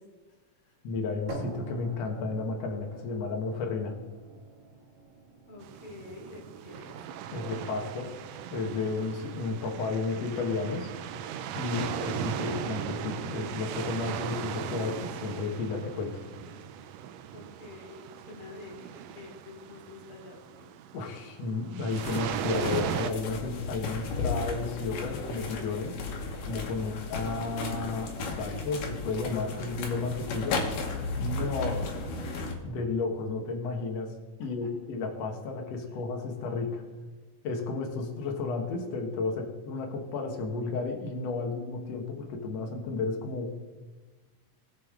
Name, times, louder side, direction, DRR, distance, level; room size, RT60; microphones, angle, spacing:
voice 1, 0.0-0.8 5.5-7.0 17.3-20.7 31.6-31.8 34.4-34.7 35.9-36.0, left 3 dB, 40° left, -2 dB, 3.8 m, -48 dB
voice 2, 0.8-3.9 7.3-8.1 8.5-10.9 11.5-16.3 20.9-26.0 26.4-30.6 31.2-31.8 32.6-34.1 34.4-36.8 37.4-43.5, left 4 dB, 60° left, 2 dB, 2.3 m, -32 dB
sound 1, 1.3-9.3, right 2 dB, 65° right, 3.4 m, -45 dB
sound 2, 5.6-23.1, right 9 dB, 80° right, 1.5 m, -38 dB
sound 3, 21.9-32.6, left 3 dB, 75° left, 3.0 m, -35 dB
20.0 x 7.2 x 3.7 m, 1.3 s
omnidirectional pair, 3.7 m